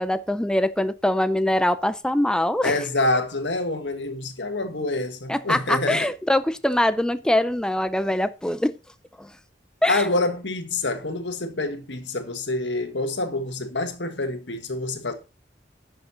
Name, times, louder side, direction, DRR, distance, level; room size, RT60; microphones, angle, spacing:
voice 1, 0.0-2.8 5.3-8.8 9.2-9.3 9.8-10.1, left 1 dB, 5° left, 0.4 m, -23 dB
voice 2, 2.6-6.1 9.9-15.1, left 2 dB, 85° left, 1.7 m, -26 dB
10.5 x 6.6 x 4.1 m
head